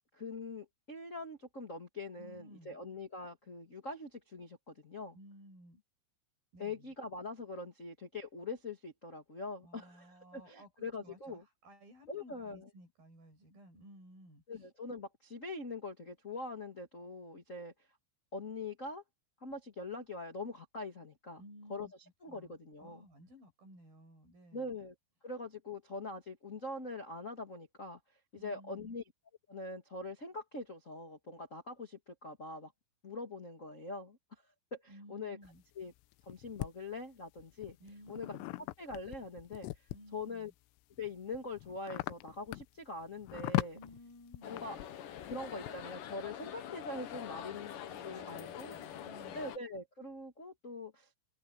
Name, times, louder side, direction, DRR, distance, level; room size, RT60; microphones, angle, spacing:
voice 1, 0.1-5.1 6.6-11.4 12.1-12.7 14.5-17.7 18.3-19.0 19.4-21.4 21.7-21.9 22.2-23.0 24.5-24.9 25.2-28.0 28.3-29.0 29.5-32.7 33.0-34.2 34.7-35.4 35.7-35.9 36.2-37.8 38.1-38.4 38.8-39.7 40.1-40.5 41.0-43.8 44.4-44.8 45.2-48.7 49.3-51.1, left 3 dB, 45° left, 0.9 m, -43 dB
voice 2, 2.2-2.8 5.1-5.8 6.5-6.9 9.6-14.7 21.4-21.9 22.3-24.8 28.3-29.0 34.9-35.6 37.8-38.6 39.9-40.5 43.7-44.9 47.9-49.5, equal, 45° right, 9.0 m, -56 dB
sound 1, 35.5-36.7 37.4-40.2 40.8-45.8, left 20 dB, 85° left, 3.3 m, -40 dB
sound 2, 44.4-49.6, left 10 dB, 65° left, 2.1 m, -45 dB
omnidirectional pair, 5.9 m